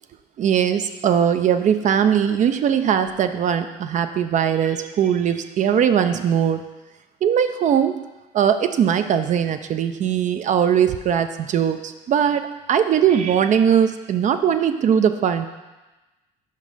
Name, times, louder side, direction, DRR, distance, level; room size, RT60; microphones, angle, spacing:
voice 1, 0.4-6.6 7.2-8.0 8.3-15.5, right 8 dB, 45° right, 9 dB, 0.4 m, -20 dB
5.2 x 5.0 x 5.4 m, 1.1 s
cardioid pair, 110°, 17 cm